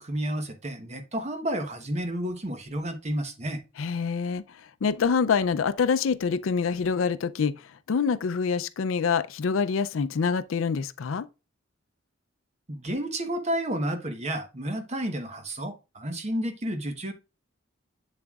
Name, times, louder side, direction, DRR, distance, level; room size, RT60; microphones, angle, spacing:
voice 1, 0.0-3.6 12.7-17.1, right 1 dB, 35° right, 1.0 m, -31 dB
voice 2, 3.8-7.5 7.9-11.3, left 5 dB, 75° left, 0.4 m, -26 dB
7.8 x 7.3 x 2.4 m
head